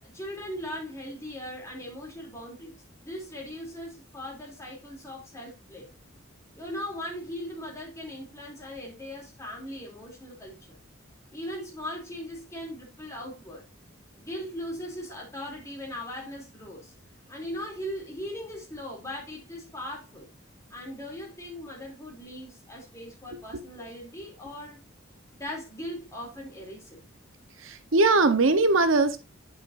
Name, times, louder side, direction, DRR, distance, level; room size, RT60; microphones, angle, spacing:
voice 1, 0.0-5.9 6.6-10.8 11.3-13.6 14.1-16.9 17.3-20.3 20.7-24.8 25.3-27.0, left 1 dB, 15° left, 2.8 m, -39 dB
voice 2, 27.6-29.2, right 3 dB, 80° right, 0.9 m, -21 dB
8.7 x 7.3 x 2.5 m
head